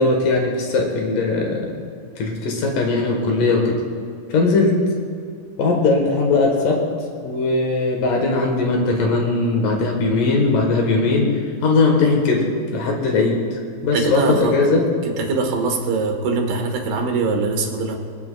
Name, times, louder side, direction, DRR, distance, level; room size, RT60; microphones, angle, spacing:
voice 1, 0.0-1.7 2.2-3.8 4.3-4.8 5.6-6.8 7.2-11.3 11.6-12.4 12.7-14.8, left 3 dB, 65° left, 1 dB, 2.7 m, -19 dB
voice 2, 13.9-14.6 15.0-18.0, right 4 dB, 85° right, 1 dB, 3.3 m, -22 dB
24.5 x 8.7 x 2.3 m, 2.4 s
omnidirectional pair, 4.4 m